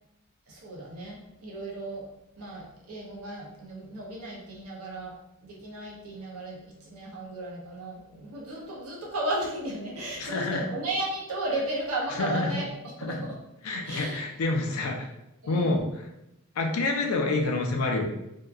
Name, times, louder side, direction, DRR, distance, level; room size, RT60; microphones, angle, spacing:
voice 1, 0.5-2.0 2.4-5.1 5.4-13.4 13.8-14.2 15.4-15.8, right 2 dB, 85° right, -3 dB, 0.6 m, -35 dB
voice 2, 10.2-10.6 12.1-12.5 13.0-13.2 13.6-15.1 15.5-15.9 16.6-18.1, left 3 dB, 85° left, 2 dB, 0.5 m, -27 dB
2.8 x 2.2 x 2.3 m, 0.88 s
head